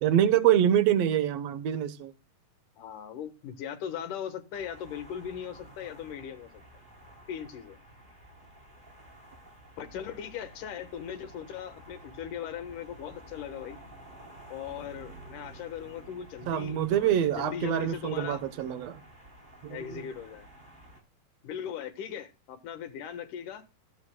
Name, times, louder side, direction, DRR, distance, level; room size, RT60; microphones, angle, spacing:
voice 1, 0.0-2.1 16.5-19.0 19.6-20.0, right 10 dB, 65° right, 1.8 m, -25 dB
voice 2, 2.8-6.5 7.3-7.8 9.8-13.8 14.5-18.4 19.7-20.5 21.4-23.6, left 8 dB, 75° left, 2.8 m, -39 dB
sound 1, 4.5-21.0, right 1 dB, 15° right, 3.4 m, -51 dB
18.0 x 8.8 x 2.2 m
omnidirectional pair, 3.7 m